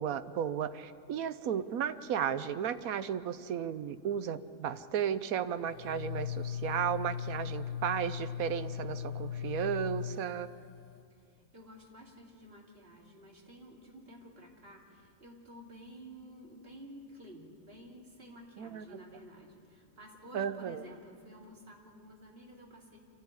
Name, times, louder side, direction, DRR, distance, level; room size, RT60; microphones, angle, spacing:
voice 1, 0.0-10.5 18.6-18.9 20.3-20.8, right 8 dB, 65° right, 12 dB, 1.1 m, -34 dB
sound 1, 5.7-11.0, left 8 dB, 65° left, 1.1 m, -38 dB
voice 2, 11.2-23.0, equal, 35° right, -1 dB, 3.1 m, -52 dB
25.0 x 14.0 x 9.7 m, 2.4 s
omnidirectional pair, 1.7 m